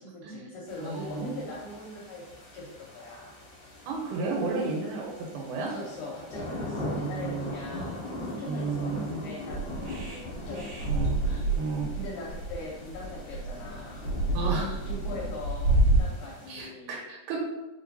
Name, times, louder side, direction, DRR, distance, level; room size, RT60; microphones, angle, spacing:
voice 1, 0.0-2.2 2.5-3.4 5.6-11.6 11.9-14.1 14.8-17.0, left 2 dB, 80° left, -3 dB, 1.9 m, -41 dB
sound 1, 0.7-16.7, left 1 dB, 55° left, 1.0 m, -41 dB
voice 2, 0.8-1.4 3.9-5.7 6.7-7.5 8.5-9.1 10.9-11.1 11.6-11.9 14.3-14.8 16.5-17.4, right 4 dB, 90° right, -2 dB, 3.0 m, -32 dB
sound 2, 9.5-16.0, right 2 dB, 70° right, 2.9 m, -28 dB
5.9 x 2.9 x 2.7 m, 1.0 s
omnidirectional pair, 4.4 m